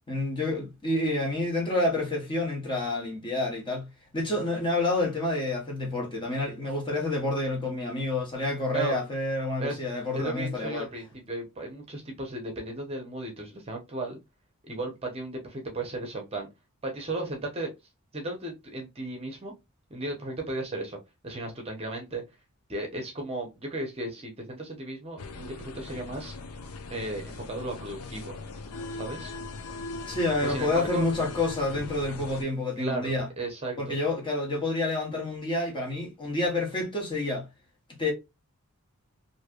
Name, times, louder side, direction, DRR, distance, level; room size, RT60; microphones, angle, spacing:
voice 1, 0.1-3.9 4.1-10.9 30.1-33.3 33.8-37.5 38.0-38.1, left 2 dB, 20° left, 1.2 m, -28 dB
voice 2, 10.1-14.2 14.6-16.5 16.8-17.7 18.1-19.5 19.9-21.0 21.2-22.2 22.7-26.3 26.9-28.3 28.9-29.3 30.4-31.1 32.8-34.0, right 2 dB, 25° right, 0.8 m, -35 dB
sound 1, 25.2-32.4, left 3 dB, 85° left, 0.6 m, -39 dB
3.2 x 2.7 x 2.3 m
head